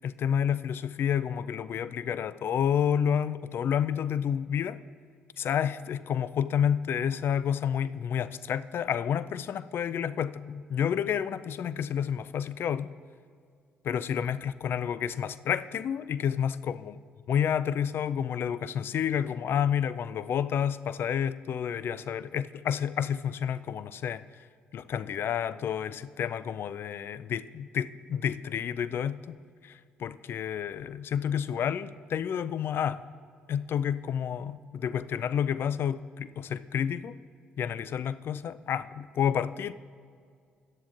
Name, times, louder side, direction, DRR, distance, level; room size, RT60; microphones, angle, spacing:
voice 1, 0.0-4.8 5.4-12.9 13.8-17.0 17.3-24.2 24.7-29.4 29.6-33.0 33.5-37.1 37.6-39.7, left 8 dB, 55° left, 17 dB, 0.3 m, -30 dB
17.0 x 10.5 x 2.5 m, 2.2 s
hypercardioid pair, 50°, 5 cm